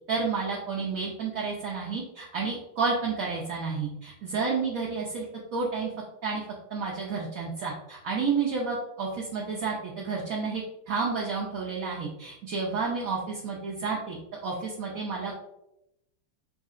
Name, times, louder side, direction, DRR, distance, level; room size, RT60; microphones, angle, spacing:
voice 1, 0.1-5.2 5.5-5.9 6.2-6.4 6.7-15.4, right 4 dB, 75° right, -3 dB, 0.8 m, -30 dB
5.1 x 2.7 x 2.4 m, 0.87 s
omnidirectional pair, 2.2 m